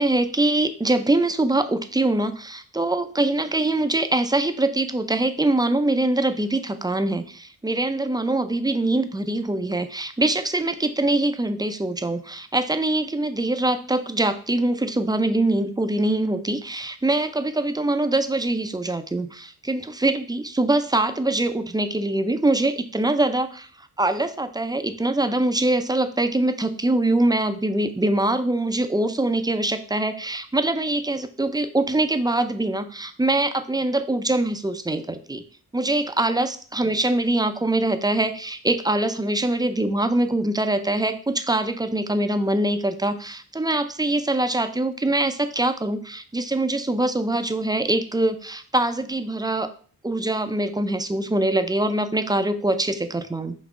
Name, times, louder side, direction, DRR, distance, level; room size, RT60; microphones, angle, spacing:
voice 1, 0.0-23.7 24.0-35.4 35.7-49.7 50.0-53.5, right 2 dB, 10° right, 9 dB, 0.4 m, -23 dB
5.9 x 2.0 x 3.5 m, 0.44 s
cardioid pair, 50°, 37 cm